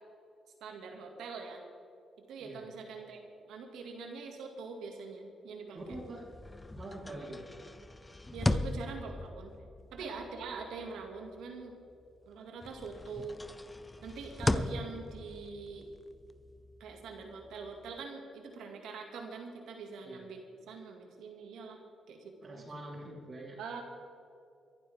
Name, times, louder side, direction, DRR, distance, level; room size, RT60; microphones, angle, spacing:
voice 1, 0.6-1.6 2.3-3.2 3.5-5.8 8.3-9.5 9.9-11.8 12.3-13.4 14.0-15.9 16.8-20.4 20.7-21.8 22.1-22.6 23.6-23.8, right 4 dB, 80° right, 2 dB, 2.3 m, -44 dB
voice 2, 5.7-6.3 6.8-7.4 10.0-10.1 20.0-20.2 22.4-23.6, right 1 dB, 45° right, -5 dB, 4.2 m, -44 dB
sound 1, 5.8-12.3 12.6-18.0, left 2 dB, 20° left, 0.8 m, -38 dB
23.0 x 11.5 x 3.7 m, 2.5 s
supercardioid pair, 55°, 0 cm